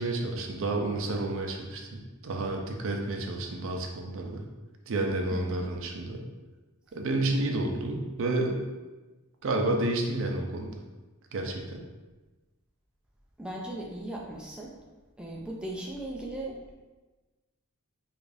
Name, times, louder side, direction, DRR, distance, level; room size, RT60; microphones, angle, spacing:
voice 1, 0.0-4.5 4.9-6.2 6.9-8.6 9.4-10.7 11.3-11.8, right 2 dB, 60° right, 2 dB, 0.5 m, -30 dB
voice 2, 5.3-5.6 13.4-14.8 15.2-16.7, right 1 dB, 5° right, -3 dB, 0.4 m, -38 dB
4.8 x 2.4 x 2.5 m, 1.2 s
head